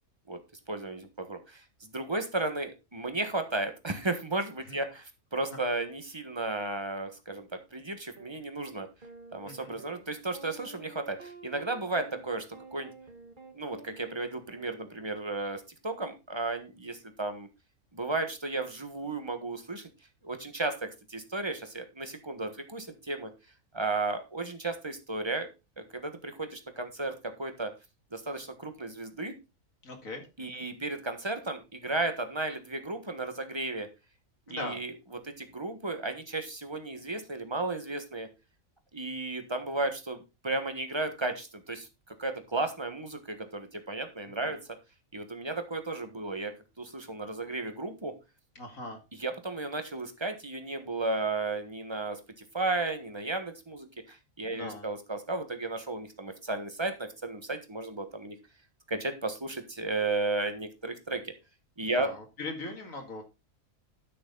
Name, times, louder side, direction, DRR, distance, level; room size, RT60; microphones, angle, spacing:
voice 1, 0.7-8.9 9.3-12.9 13.5-17.5 17.9-19.9 20.2-23.3 23.7-25.5 25.8-27.7 28.1-29.3 30.4-33.9 34.5-38.3 38.9-41.9 42.2-44.6 45.1-46.5 46.8-48.1 49.1-52.2 52.5-58.4 58.9-61.3 61.8-62.1, right 2 dB, 20° right, 7 dB, 1.3 m, -34 dB
sound 1, 8.2-8.3 9.0-15.3, right 3 dB, 40° right, 1.5 m, -51 dB
voice 2, 9.4-9.8 29.8-30.2 30.5-30.6 34.5-34.8 48.6-49.0 54.5-54.9 62.0-63.2, left 2 dB, 75° left, 3 dB, 2.6 m, -39 dB
12.0 x 6.4 x 3.9 m, 0.27 s
omnidirectional pair, 1.4 m